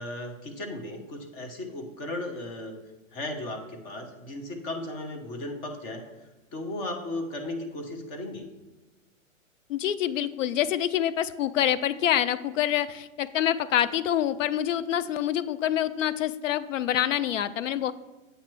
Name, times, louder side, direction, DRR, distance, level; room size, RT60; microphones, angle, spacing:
voice 1, 0.0-2.7 3.1-6.0 6.5-8.5, left 1 dB, 30° left, 4 dB, 1.0 m, -36 dB
voice 2, 9.7-17.9, left 11 dB, 70° left, 15 dB, 0.5 m, -26 dB
8.0 x 2.9 x 6.0 m, 1.1 s
hypercardioid pair, 135°, 40 cm